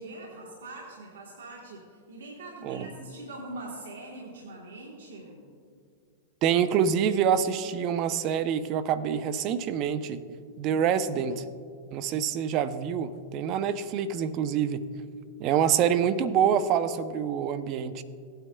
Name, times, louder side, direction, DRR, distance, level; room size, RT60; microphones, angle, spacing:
voice 1, 0.0-5.4 10.6-10.9, right 2 dB, 90° right, -1 dB, 1.3 m, -43 dB
voice 2, 6.4-10.2 10.6-11.4 11.9-14.8 15.4-18.0, right 8 dB, 45° right, 13 dB, 0.5 m, -26 dB
16.0 x 8.9 x 2.2 m, 2.2 s
hypercardioid pair, 120°, 0 cm